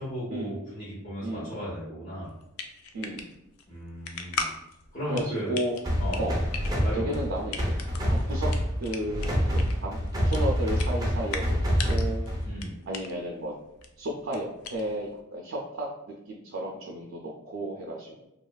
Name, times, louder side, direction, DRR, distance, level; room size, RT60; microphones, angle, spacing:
voice 1, 0.0-2.3 3.7-4.5 4.9-5.6 6.0-6.3 6.8-7.2 12.4-12.7, equal, 35° left, -11 dB, 0.9 m, -35 dB
voice 2, 1.2-1.6 2.9-3.3 5.1-5.8 6.2-6.4 6.9-7.7 8.1-8.5 8.8-10.0 10.2-11.6 11.9-12.2 12.9-13.5 14.0-18.3, right 1 dB, 75° right, -2 dB, 0.4 m, -33 dB
sound 1, 2.2-15.2, left 5 dB, 80° left, 0.3 m, -40 dB
sound 2, 5.8-12.6, equal, 15° right, 0.5 m, -27 dB
2.8 x 2.3 x 2.2 m, 0.86 s
head